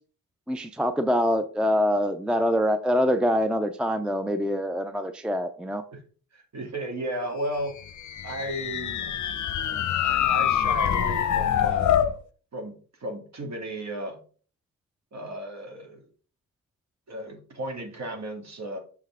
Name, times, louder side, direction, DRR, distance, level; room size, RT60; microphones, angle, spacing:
voice 1, 0.5-5.8, equal, 5° right, 10 dB, 0.5 m, -25 dB
voice 2, 6.3-7.8 8.2-9.1 10.0-11.9 12.5-14.2 15.1-16.1 17.1-18.8, right 1 dB, 50° right, 3 dB, 2.3 m, -34 dB
sound 1, 7.8-12.2, left 10 dB, 55° left, 0.8 m, -25 dB
6.5 x 5.6 x 3.6 m, 0.41 s
cardioid pair, 85°, 36 cm